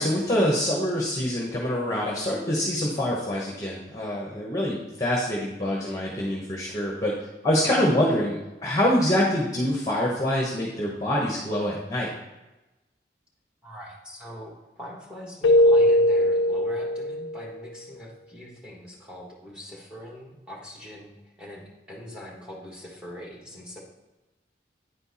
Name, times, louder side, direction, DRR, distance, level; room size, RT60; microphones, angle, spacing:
voice 1, 0.0-7.1 7.4-12.1, left 1 dB, 20° left, -3 dB, 1.0 m, -25 dB
voice 2, 13.6-23.8, equal, 5° right, -3 dB, 1.6 m, -42 dB
Keyboard (musical), 15.4-17.4, left 1 dB, 90° left, 0.4 m, -20 dB
9.4 x 4.5 x 4.2 m, 1.0 s
head